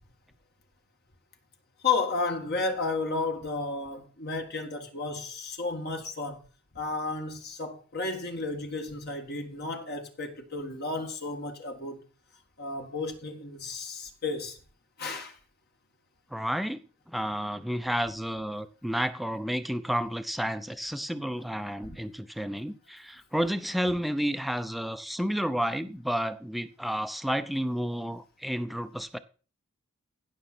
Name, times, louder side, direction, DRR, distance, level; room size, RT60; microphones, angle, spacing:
voice 1, 1.8-6.4 6.8-12.0 12.6-14.6 15.0-15.4, left 3 dB, 50° left, 1.7 m, -32 dB
voice 2, 16.3-16.8 17.1-29.2, equal, ahead, 0.6 m, -31 dB
16.0 x 6.2 x 4.4 m
head